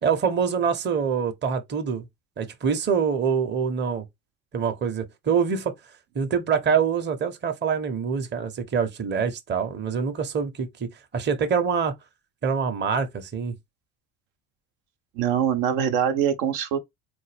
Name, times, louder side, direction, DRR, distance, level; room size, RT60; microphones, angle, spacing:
voice 1, 0.0-2.1 2.4-4.0 4.5-5.7 6.1-11.9 12.4-13.6, right 6 dB, 25° right, 0.7 m, -25 dB
voice 2, 15.1-16.8, right 9 dB, 65° right, 0.8 m, -23 dB
3.9 x 2.2 x 3.3 m
hypercardioid pair, 65°, 47 cm